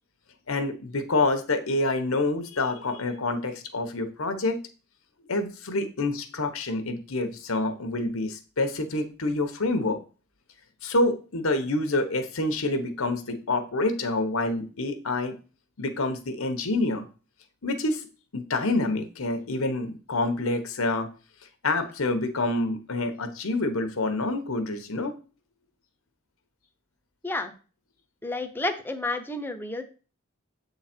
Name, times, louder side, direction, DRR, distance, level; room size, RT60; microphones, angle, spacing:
voice 1, 0.5-4.6 5.3-10.0 10.8-15.4 15.8-17.0 17.6-18.1 18.3-21.1 21.6-25.1, left 2 dB, 85° left, 7 dB, 1.0 m, -27 dB
voice 2, 28.2-29.8, left 2 dB, 10° left, 7 dB, 0.7 m, -30 dB
7.9 x 3.9 x 4.4 m, 0.36 s
head